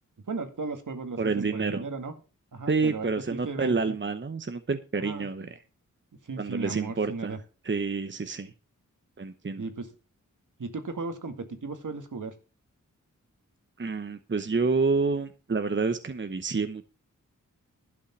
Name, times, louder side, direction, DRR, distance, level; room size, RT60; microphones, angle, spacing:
voice 1, 0.3-2.1 2.5-4.0 5.0-5.3 6.2-7.4 9.6-9.9 10.6-12.3, right 4 dB, 70° right, 7 dB, 2.0 m, -36 dB
voice 2, 1.2-1.9 2.7-5.5 6.4-7.4 7.6-8.5 9.2-9.6 13.8-16.9, right 4 dB, 35° right, 9 dB, 0.9 m, -28 dB
12.0 x 5.4 x 7.3 m, 0.34 s
cardioid pair, 50°, 32 cm